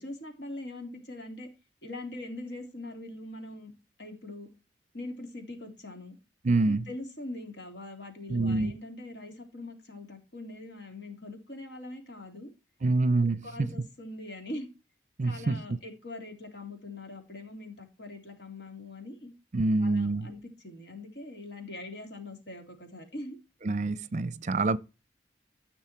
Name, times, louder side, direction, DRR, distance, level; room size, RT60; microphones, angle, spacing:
voice 1, 0.0-1.5 1.8-3.7 4.0-4.5 4.9-6.2 6.5-12.5 13.1-14.7 15.2-19.3 19.8-23.4, left 2 dB, 75° left, 3.3 m, -42 dB
voice 2, 6.4-6.8 8.3-8.7 12.8-13.7 15.2-15.8 19.5-20.3 23.6-24.8, right 3 dB, 40° right, 0.5 m, -26 dB
14.0 x 6.2 x 4.5 m
head